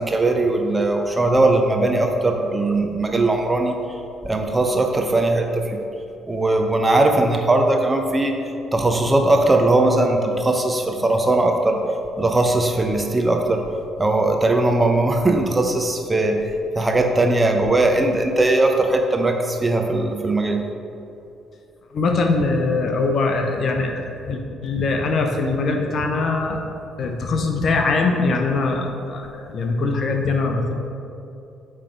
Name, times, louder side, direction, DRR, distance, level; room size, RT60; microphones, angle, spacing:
voice 1, 0.0-3.8 4.2-5.8 6.3-8.4 8.7-11.8 12.2-13.6 14.0-20.6, right 2 dB, 20° right, 3 dB, 0.8 m, -19 dB
voice 2, 21.9-26.6 27.0-30.7, left 3 dB, 50° left, 3 dB, 0.7 m, -22 dB
8.6 x 3.4 x 4.5 m, 2.7 s
figure-of-eight pair, 45°, 0 cm